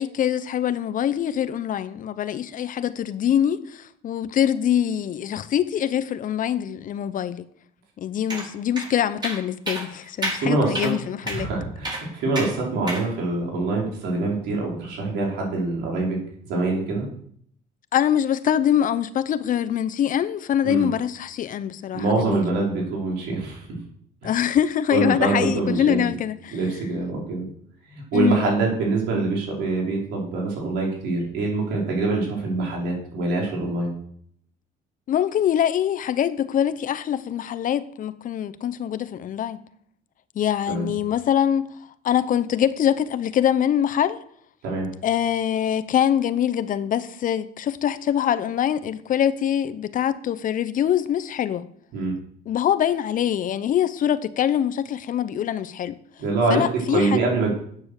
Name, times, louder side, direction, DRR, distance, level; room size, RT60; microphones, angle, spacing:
voice 1, 0.0-7.4 8.0-11.5 17.9-22.4 24.2-26.6 28.1-28.5 35.1-39.6 40.3-41.7 42.0-44.2 45.0-51.6 52.5-56.0 56.5-57.2, left 10 dB, 50° left, 0.8 m, -24 dB
sound 1, 8.3-8.5 8.8-8.9 9.2-9.4 9.7-9.8 10.2-10.4 10.7-10.9 11.3-11.4 11.8-12.0 12.3-12.5 12.9-13.0, right 1 dB, 25° right, 5.2 m, -29 dB
voice 2, 10.3-10.9 11.3-16.2 16.5-17.0 20.6-20.9 21.9-23.8 24.2-24.3 24.9-26.1 26.5-27.5 27.9-33.9 40.7-40.9 44.6-44.9 51.9-52.2 56.2-57.5, right 3 dB, 90° right, 5.1 m, -25 dB
9.7 x 8.9 x 6.6 m
cardioid pair, 110°, 17 cm